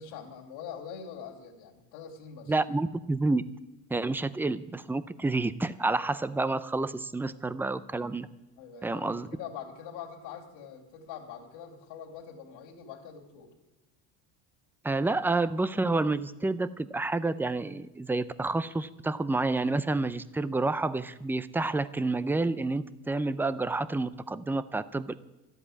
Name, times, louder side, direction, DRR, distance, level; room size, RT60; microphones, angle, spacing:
voice 1, 0.0-2.5 7.2-7.4 8.6-13.5, left 7 dB, 75° left, -3 dB, 2.7 m, -44 dB
voice 2, 2.5-3.4 3.9-8.3 8.8-9.3 14.8-25.1, right 3 dB, 5° right, 15 dB, 0.4 m, -29 dB
13.0 x 8.0 x 9.8 m, 1.0 s
supercardioid pair, 100°, 44 cm